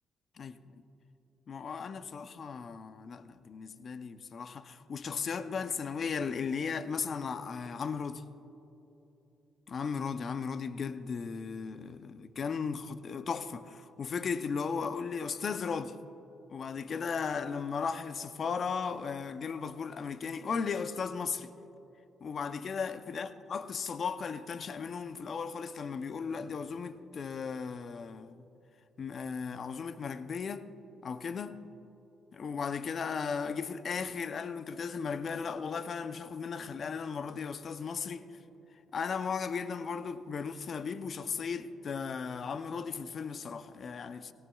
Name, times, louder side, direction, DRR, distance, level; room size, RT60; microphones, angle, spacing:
voice 1, 0.4-0.8 1.5-8.2 9.7-16.0 16.5-21.5 22.2-28.4 29.0-30.7 31.0-31.6 32.3-38.3 38.9-44.3, left 5 dB, 50° left, 0.5 m, -36 dB
18.0 x 17.0 x 2.3 m
cardioid pair, 90°, 0 cm